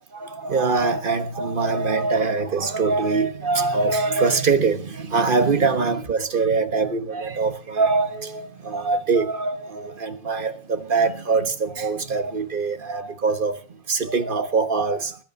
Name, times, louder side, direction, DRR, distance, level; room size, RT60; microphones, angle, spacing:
voice 1, 0.1-13.6 13.9-15.2, right 4 dB, 40° right, 1.5 m, -23 dB
20.0 x 8.8 x 6.5 m
omnidirectional pair, 1.4 m